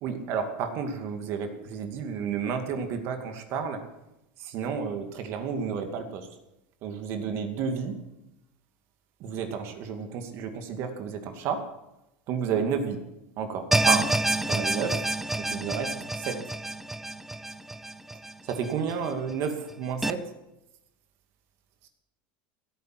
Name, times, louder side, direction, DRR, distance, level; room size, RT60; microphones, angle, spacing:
voice 1, 0.0-3.8 4.4-6.3 6.8-8.0 9.2-11.7 12.3-13.0 13.4-14.1 14.5-15.1 15.4-16.5 18.4-20.3 21.8-21.9, right 6 dB, 55° right, 6 dB, 2.4 m, -31 dB
sound 1, 13.7-18.9 19.3-19.4 20.0-20.1, right 2 dB, 5° right, 0.6 m, -28 dB
16.5 x 9.4 x 7.8 m, 0.91 s
supercardioid pair, 120°, 5 cm